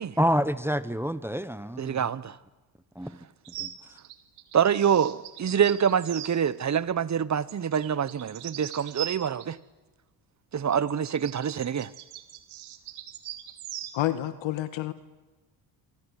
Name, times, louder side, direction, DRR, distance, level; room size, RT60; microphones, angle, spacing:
voice 1, 0.2-2.1 2.9-3.2 3.6-3.7, equal, 5° right, 1.3 m, -27 dB
voice 2, 1.8-2.4 4.5-9.6 10.5-11.9, right 8 dB, 35° right, 1.1 m, -26 dB
sound 1, 3.4-6.3 7.5-9.5 10.7-14.0, right 13 dB, 70° right, 2.7 m, -41 dB
voice 3, 13.9-14.9, left 14 dB, 65° left, 1.6 m, -29 dB
28.0 x 25.0 x 8.4 m
supercardioid pair, 65°, 50 cm